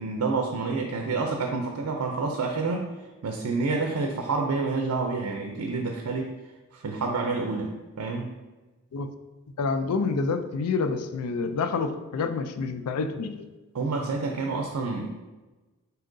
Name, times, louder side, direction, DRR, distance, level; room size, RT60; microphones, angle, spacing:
voice 1, 0.0-2.9 3.2-6.3 6.7-8.3 13.7-15.1, right 3 dB, 80° right, 2 dB, 0.5 m, -28 dB
voice 2, 9.6-13.4, left 4 dB, 85° left, 10 dB, 0.4 m, -28 dB
7.3 x 2.8 x 2.6 m, 1.2 s
head